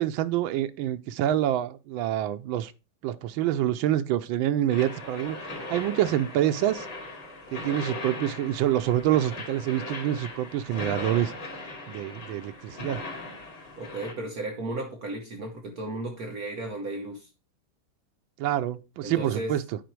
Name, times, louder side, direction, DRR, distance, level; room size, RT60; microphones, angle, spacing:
voice 1, 0.0-2.7 3.0-5.4 5.7-6.9 7.5-11.3 11.9-13.0 18.4-19.6, right 12 dB, 85° right, 1.4 m, -26 dB
sound 1, 4.7-14.1, left 2 dB, 75° left, 3.2 m, -39 dB
voice 2, 13.8-17.3 19.0-19.6, right 2 dB, 50° right, 1.4 m, -34 dB
9.2 x 4.5 x 4.6 m
omnidirectional pair, 2.2 m